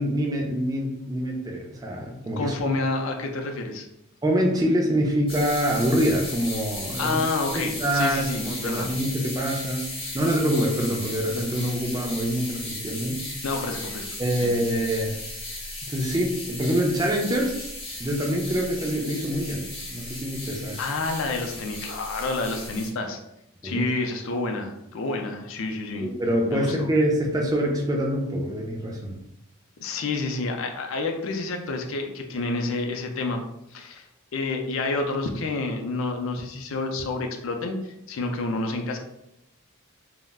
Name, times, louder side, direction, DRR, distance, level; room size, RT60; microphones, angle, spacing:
voice 1, 0.0-2.5 4.2-7.2 7.6-13.2 14.2-15.2 15.8-17.7 18.0-20.8 23.6-23.9 26.0-29.2, equal, 15° right, -1 dB, 0.3 m, -25 dB
voice 2, 2.4-3.9 7.0-8.9 13.4-14.1 14.4-14.5 20.8-23.2 23.6-26.1 26.5-26.9 29.8-33.4 33.7-34.1 34.3-37.8 38.1-39.0, left 3 dB, 60° left, 3 dB, 0.4 m, -29 dB
sound 1, 5.3-22.9, left 2 dB, 25° left, 0.7 m, -36 dB
2.3 x 2.0 x 3.4 m, 0.85 s
head